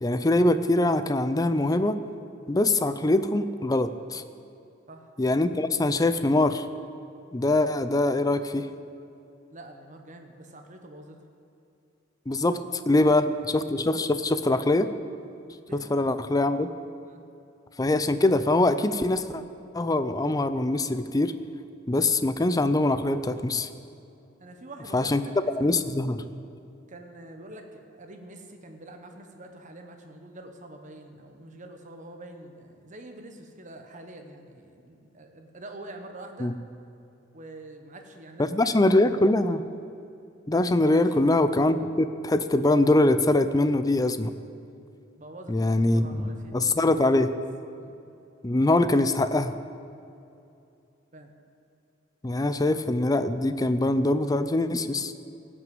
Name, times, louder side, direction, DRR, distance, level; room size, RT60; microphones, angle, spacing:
voice 1, 0.0-2.0 2.5-4.2 5.2-6.6 7.3-8.7 12.3-12.6 12.9-13.2 13.5-14.9 15.9-16.7 17.8-19.4 19.7-21.3 21.9-23.7 24.9-25.2 25.6-26.2 36.4-36.5 38.5-39.6 40.5-44.3 45.5-47.3 48.4-49.5 52.2-55.1, left 2 dB, 20° left, 11 dB, 0.5 m, -23 dB
voice 2, 9.5-11.2 12.5-13.4 15.5-16.2 17.0-17.2 24.4-25.8 26.9-36.5 37.3-39.0 40.8-41.2 45.2-47.3 47.7-48.0 51.1-51.3, right 2 dB, 40° right, 4 dB, 1.2 m, -46 dB
17.0 x 6.2 x 7.7 m, 2.6 s
head